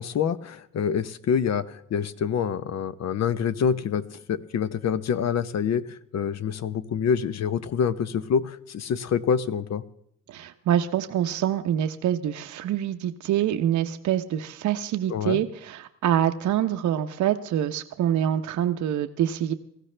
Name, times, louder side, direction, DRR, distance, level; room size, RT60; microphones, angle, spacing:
voice 1, 0.0-9.8 15.1-15.4, left 7 dB, 60° left, 13 dB, 0.9 m, -26 dB
voice 2, 10.3-19.5, right 10 dB, 70° right, 7 dB, 0.8 m, -25 dB
19.5 x 15.0 x 3.3 m, 0.73 s
cardioid pair, 90°, 30 cm